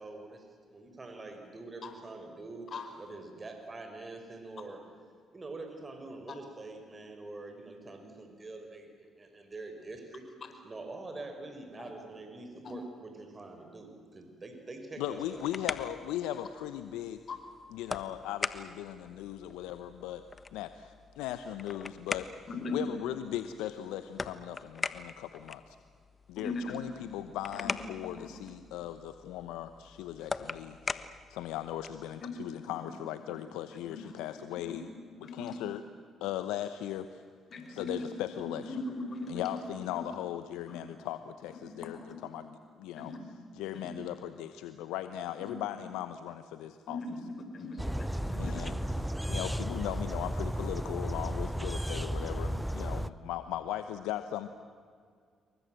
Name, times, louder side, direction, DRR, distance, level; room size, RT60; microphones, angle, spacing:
voice 1, 0.0-2.7 3.0-4.9 5.3-8.9 9.2-10.2 10.6-15.4, right 2 dB, 35° right, 5 dB, 5.2 m, -45 dB
voice 2, 15.0-17.2 17.7-20.2 20.5-22.3 22.7-25.8 26.3-31.0 31.3-34.9 35.2-35.8 36.2-37.2 37.7-38.8 39.3-43.1 43.5-47.0 48.4-54.5, left 12 dB, 80° left, 10 dB, 0.9 m, -38 dB
sound 1, 15.0-32.1, left 4 dB, 35° left, 1.4 m, -42 dB
voice 3, 26.4-26.8 27.5-27.7 28.1-28.3 32.2-32.3 32.8-32.9 33.9-34.0 34.7-34.8 35.2-35.6 37.5-37.9 38.3-39.4 39.9-40.0 41.8-41.9 43.0-43.2 43.7-43.9 45.4-45.5 46.9-47.1 47.5-48.9, left 3 dB, 50° left, 7 dB, 4.8 m, -40 dB
sound 2, 47.8-53.1, equal, 5° right, 0.9 m, -34 dB
28.0 x 23.5 x 7.8 m, 2.1 s
hypercardioid pair, 50°, 0 cm